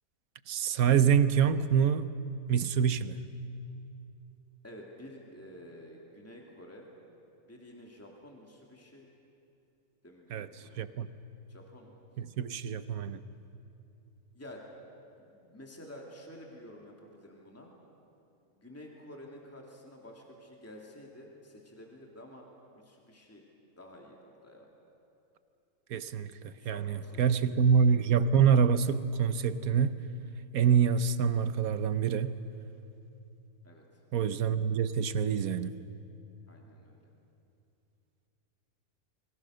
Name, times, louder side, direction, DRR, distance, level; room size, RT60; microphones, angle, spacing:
voice 1, 0.5-2.1 2.5-3.2 10.3-10.5 10.8-11.1 12.2-13.2 25.9-30.0 30.5-32.4 34.1-35.7, right 7 dB, 70° right, 1.3 m, -26 dB
voice 2, 4.6-6.9 7.5-9.1 10.0-11.0 11.5-12.0 14.3-14.7 15.2-17.7 18.5-22.5 22.7-23.4 23.7-24.7 26.6-27.2 33.6-33.8 36.5-37.0, left 1 dB, 10° left, 2.7 m, -50 dB
29.0 x 23.0 x 6.5 m
omnidirectional pair, 1.6 m